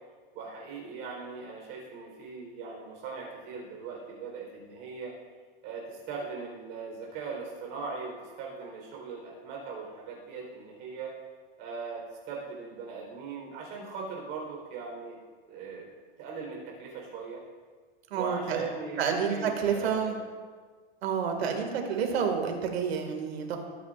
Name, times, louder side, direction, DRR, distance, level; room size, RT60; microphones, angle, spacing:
voice 1, 0.3-5.2 5.6-11.1 11.6-15.2 15.5-15.9 16.2-17.4 18.1-20.1, right 5 dB, 35° right, -2 dB, 4.2 m, -39 dB
voice 2, 18.1-18.6 19.0-20.2 21.0-23.6, right 6 dB, 85° right, 3 dB, 2.3 m, -29 dB
21.5 x 9.7 x 2.6 m, 1.5 s
supercardioid pair, 170°, 30 cm